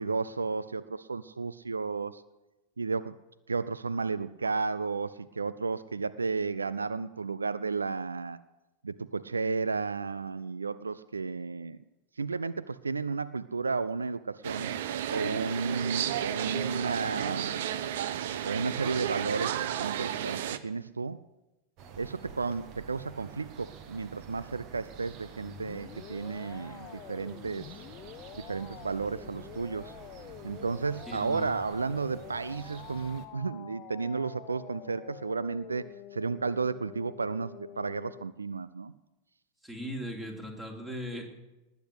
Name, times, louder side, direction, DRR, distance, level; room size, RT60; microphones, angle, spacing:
voice 1, 0.0-2.2 2.8-3.1 3.5-8.4 8.8-11.8 12.2-14.7 15.1-17.6 18.4-21.2 22.0-27.6 28.4-29.9 30.4-38.9, right 4 dB, 75° right, 16 dB, 0.4 m, -33 dB
sound 1, 14.4-20.6, right 10 dB, 55° right, 0.8 m, -32 dB
sound 2, 21.8-33.3, right 6 dB, 40° right, 1.5 m, -49 dB
sound 3, 25.4-38.2, left 13 dB, 35° left, 0.7 m, -47 dB
voice 2, 31.1-31.5 39.6-41.2, equal, 10° right, 3 dB, 3.2 m, -38 dB
19.5 x 8.2 x 8.2 m, 1.0 s
figure-of-eight pair, 90°, 0 cm